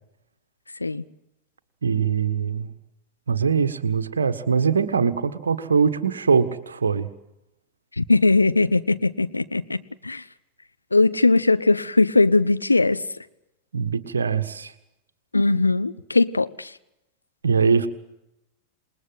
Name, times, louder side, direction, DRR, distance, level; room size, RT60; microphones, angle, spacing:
voice 1, 1.8-2.7 3.3-7.1 13.7-14.7 17.4-17.9, right 6 dB, 70° right, 9 dB, 1.6 m, -22 dB
voice 2, 8.0-10.2 10.9-13.0 15.3-16.7, left 3 dB, 80° left, 12 dB, 0.9 m, -20 dB
27.5 x 20.5 x 7.8 m, 0.88 s
figure-of-eight pair, 90°, 0 cm